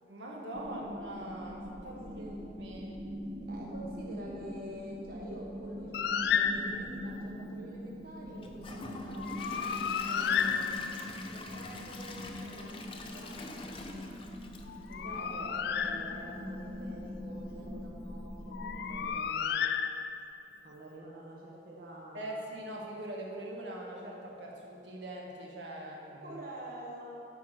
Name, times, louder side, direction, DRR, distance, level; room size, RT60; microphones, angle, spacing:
voice 1, 0.1-2.2 2.6-3.0 22.1-26.4, right 1 dB, 85° right, -2 dB, 1.3 m, -42 dB
sound 1, 0.5-19.1, equal, 20° right, 0.7 m, -43 dB
voice 2, 1.9-2.4 3.5-9.8 10.1-10.7 11.2-13.7 14.9-19.6 20.6-22.4 26.2-27.2, right 1 dB, 55° right, -3 dB, 1.1 m, -47 dB
Bird, 5.9-7.1 9.2-11.2 14.7-16.5 18.5-20.4, left 7 dB, 65° left, 0.3 m, -32 dB
Gurgling / Toilet flush / Trickle dribble, 8.4-15.4 15.8-15.9 16.4-16.5, left 3 dB, 30° left, 0.6 m, -46 dB
9.3 x 4.7 x 6.2 m, 2.8 s
head